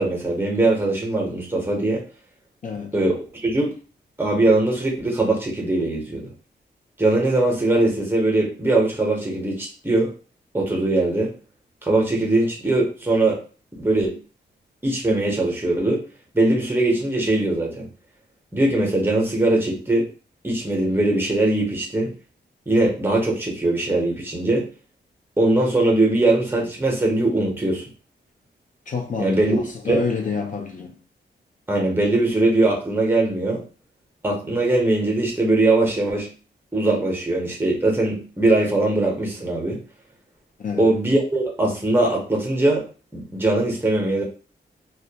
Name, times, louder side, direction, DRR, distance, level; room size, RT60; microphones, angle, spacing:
voice 1, 0.0-2.0 2.9-3.7 4.2-6.3 7.0-10.1 10.5-11.3 11.8-13.4 13.8-14.2 14.8-16.0 16.3-17.9 18.5-20.1 20.4-22.1 22.7-24.6 25.4-27.8 29.2-29.6 29.9-30.0 31.7-33.6 34.2-36.3 36.7-39.8 40.8-42.8 43.1-44.2, right 2 dB, 10° right, 0.7 m, -21 dB
voice 2, 2.6-2.9 28.9-31.0 40.6-40.9, left 5 dB, 45° left, 0.4 m, -28 dB
2.2 x 2.1 x 2.7 m
wide cardioid pair, 150°, 18 cm